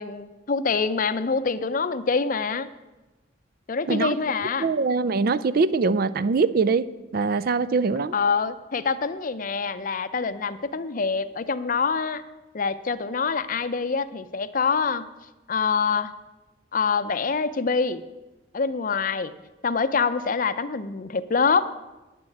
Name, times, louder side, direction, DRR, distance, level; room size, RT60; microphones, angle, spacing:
voice 1, 0.0-2.7 3.7-4.7 8.1-12.2 12.5-15.1 15.5-16.1 16.7-18.0 18.5-19.3 19.6-21.7, left 5 dB, 45° left, 13 dB, 0.5 m, -25 dB
voice 2, 4.6-8.1, right 4 dB, 50° right, 15 dB, 0.4 m, -23 dB
10.0 x 7.3 x 7.8 m, 1.1 s
head